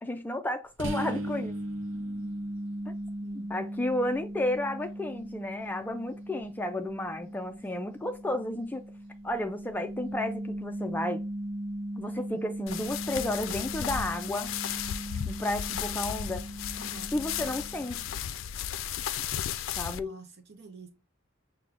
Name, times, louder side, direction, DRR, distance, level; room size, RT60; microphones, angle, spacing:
voice 1, 0.0-1.6 3.5-8.8 9.2-11.2 12.0-14.5 15.3-16.4 17.1-18.1 19.8-20.2, left 1 dB, 10° left, 0.3 m, -32 dB
sound 1, 0.8-18.3, right 1 dB, 75° right, 0.7 m, -38 dB
voice 2, 1.9-2.4 3.2-3.5 7.6-7.9 16.8-17.1 20.0-20.9, right 4 dB, 55° right, 1.0 m, -49 dB
sound 2, 12.7-20.0, left 9 dB, 85° left, 0.4 m, -35 dB
6.1 x 2.2 x 3.5 m
head